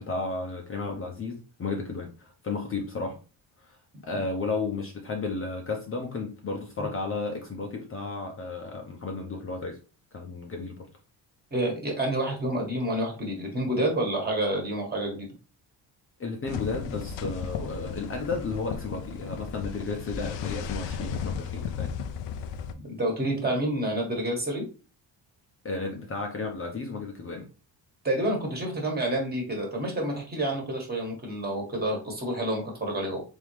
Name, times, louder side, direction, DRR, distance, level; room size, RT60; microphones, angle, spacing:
voice 1, 0.0-3.2 3.6-9.8 10.1-10.9 16.2-21.9 25.6-27.4, left 3 dB, 30° left, 0.7 m, -33 dB
voice 2, 11.5-15.3 22.7-24.6 28.0-33.2, right 1 dB, 20° right, 1.5 m, -28 dB
sound 1, 16.5-22.7, left 6 dB, 85° left, 0.6 m, -35 dB
3.6 x 3.6 x 3.2 m
cardioid pair, 135°, 42 cm